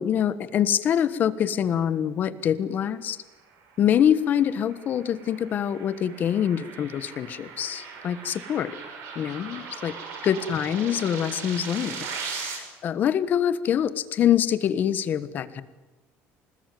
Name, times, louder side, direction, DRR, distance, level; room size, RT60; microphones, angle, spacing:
voice 1, 0.0-3.2 3.8-8.7 9.1-9.9 10.2-15.6, left 9 dB, 40° left, 13 dB, 1.3 m, -25 dB
sound 1, 3.7-12.6, right 5 dB, 65° right, 6.5 m, -39 dB
26.5 x 20.0 x 9.3 m, 1.1 s
cardioid pair, 165°, 5 cm